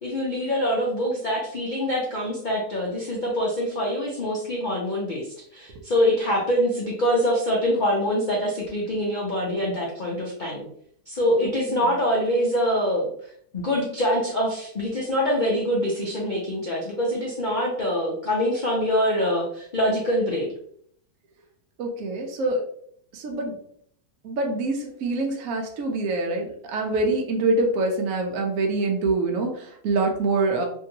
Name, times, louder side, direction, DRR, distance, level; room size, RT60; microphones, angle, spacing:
voice 1, 0.0-5.3 5.5-10.7 11.1-13.1 13.5-20.5, equal, 85° left, -4 dB, 0.4 m, -24 dB
voice 2, 11.4-11.9 21.8-22.6 23.1-23.6 24.2-30.7, right 2 dB, 65° right, 2 dB, 1.0 m, -25 dB
3.0 x 2.7 x 2.7 m, 0.63 s
omnidirectional pair, 1.8 m